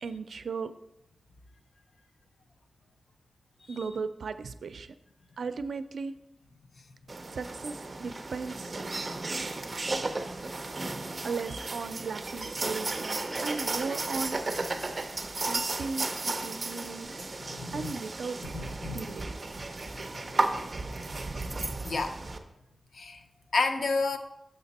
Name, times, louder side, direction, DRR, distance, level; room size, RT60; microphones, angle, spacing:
voice 1, 0.0-0.7 3.7-4.9 5.4-6.1 7.3-8.8 11.2-14.4 15.5-17.1 17.7-18.4 18.8-19.5, right 4 dB, 85° right, 12 dB, 0.4 m, -36 dB
sound 1, 7.1-22.4, right 3 dB, 35° right, 0.5 m, -34 dB
voice 2, 17.5-17.9 18.5-19.0 21.8-22.2 22.9-23.2 23.5-24.2, left 3 dB, 70° left, 6 dB, 0.6 m, -30 dB
6.6 x 5.8 x 4.1 m, 0.85 s
wide cardioid pair, 135°, 0 cm